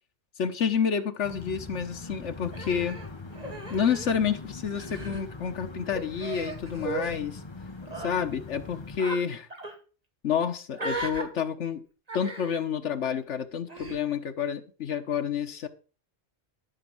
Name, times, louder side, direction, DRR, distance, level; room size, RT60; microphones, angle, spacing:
voice 1, 0.4-3.0 3.7-7.4 8.0-9.5 10.2-11.8 12.1-15.7, left 7 dB, 90° left, 9 dB, 1.4 m, -29 dB
sound 1, 1.2-9.0, left 3 dB, 25° left, 0.9 m, -42 dB
Human voice, 2.5-4.4 4.6-5.2 5.9-7.1 7.8-8.1 9.0-9.2 9.5-9.7 10.7-11.2 12.1-12.6 13.7-14.0, right 2 dB, 35° right, 2.2 m, -36 dB
13.0 x 6.4 x 6.0 m, 0.38 s
omnidirectional pair, 1.2 m